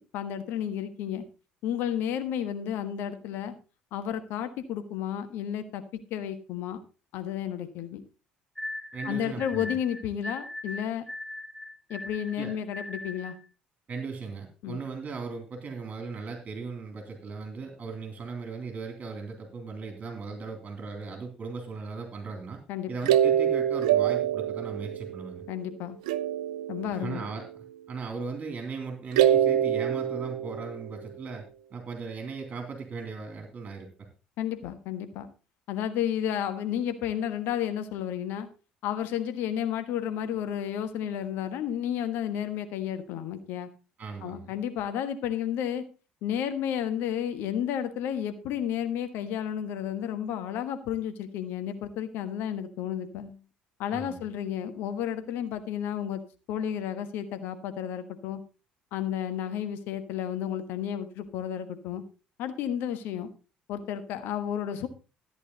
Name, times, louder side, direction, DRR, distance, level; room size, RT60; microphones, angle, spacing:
voice 1, 0.1-1.2 1.6-3.5 3.9-6.8 7.1-8.0 9.0-11.1 11.9-13.4 14.6-14.8 22.7-22.9 25.5-26.0 26.7-27.2 34.4-35.3 35.7-38.5 38.8-43.7 44.2-45.8 46.2-53.4 53.8-56.2 56.5-58.4 58.9-62.0 62.4-63.3 63.7-64.9, left 9 dB, 65° left, 9 dB, 1.3 m, -32 dB
sound 1, 8.6-13.4, left 1 dB, 10° left, 2.2 m, -39 dB
voice 2, 8.9-9.8 12.3-12.5 13.9-22.6 22.9-25.4 26.9-27.5 27.9-33.9 44.0-44.5 53.9-54.2, right 4 dB, 35° right, 3 dB, 3.2 m, -38 dB
sound 2, 23.0-25.7 26.1-27.5 29.1-31.1, right 10 dB, 75° right, 0.5 m, -25 dB
14.0 x 8.9 x 4.0 m, 0.32 s
figure-of-eight pair, 55°, 4 cm